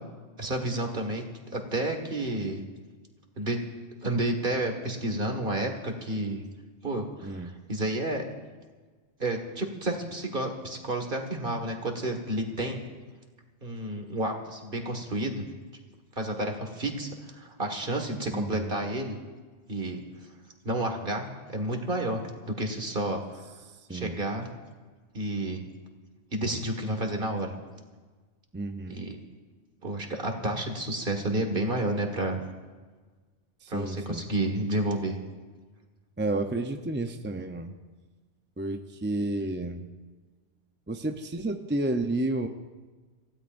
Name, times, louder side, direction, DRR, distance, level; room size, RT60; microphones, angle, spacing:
voice 1, 0.4-1.2 1.5-2.6 3.4-3.6 4.0-6.4 6.8-8.3 9.2-12.8 13.6-15.5 16.2-19.2 19.7-20.1 20.6-23.2 23.9-24.5 25.1-25.7 26.3-27.5 28.9-29.2 29.8-32.4 33.7-35.2, right 1 dB, 45° right, 3 dB, 2.0 m, -30 dB
voice 2, 18.3-18.7 23.9-24.2 28.5-29.0 33.6-34.2 36.2-37.7 38.6-39.9 40.9-42.5, right 2 dB, 15° right, 5 dB, 0.5 m, -31 dB
28.0 x 16.0 x 2.6 m, 1.4 s
omnidirectional pair, 1.2 m